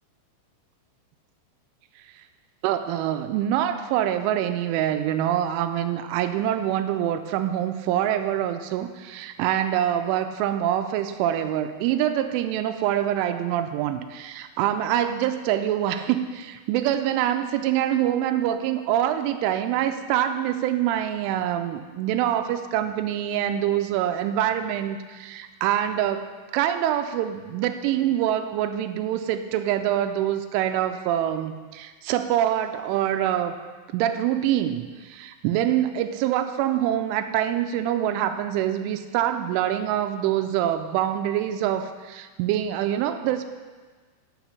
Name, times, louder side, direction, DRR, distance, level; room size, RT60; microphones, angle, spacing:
voice 1, 2.6-26.3 26.5-33.5 33.9-43.5, right 11 dB, 85° right, 8 dB, 2.9 m, -25 dB
10.0 x 6.4 x 7.1 m, 1.4 s
omnidirectional pair, 5.8 m